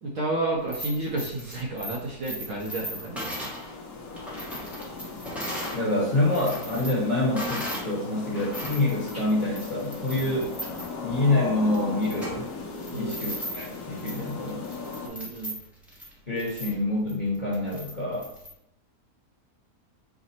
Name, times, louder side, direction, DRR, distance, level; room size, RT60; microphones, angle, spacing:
voice 1, 0.0-3.3 12.9-13.1 15.0-15.5, right 2 dB, 60° right, -3 dB, 1.0 m, -31 dB
sound 1, 0.6-5.8 6.2-7.9 8.3-18.5, equal, ahead, 0.6 m, -38 dB
sound 2, 1.9-15.1, left 3 dB, 75° left, 1.2 m, -38 dB
voice 2, 5.7-10.5 11.0-12.5 12.9-14.6 16.3-18.3, left 2 dB, 30° left, -7 dB, 1.1 m, -26 dB
4.9 x 2.0 x 4.1 m, 0.78 s
omnidirectional pair, 1.8 m